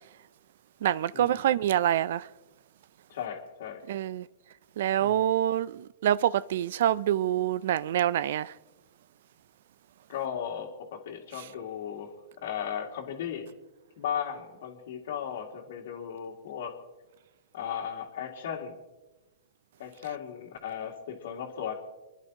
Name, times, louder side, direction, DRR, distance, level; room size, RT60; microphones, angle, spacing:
voice 1, 0.8-2.3 3.9-4.3 4.8-8.6 11.4-11.5, right 11 dB, 65° right, 0.4 m, -26 dB
voice 2, 3.1-3.8 5.0-5.3 10.1-12.1 12.4-13.5 14.0-16.7 17.5-18.8 19.8-21.7, left 8 dB, 65° left, 2.1 m, -36 dB
30.0 x 11.0 x 2.9 m
hypercardioid pair, 115°, 0 cm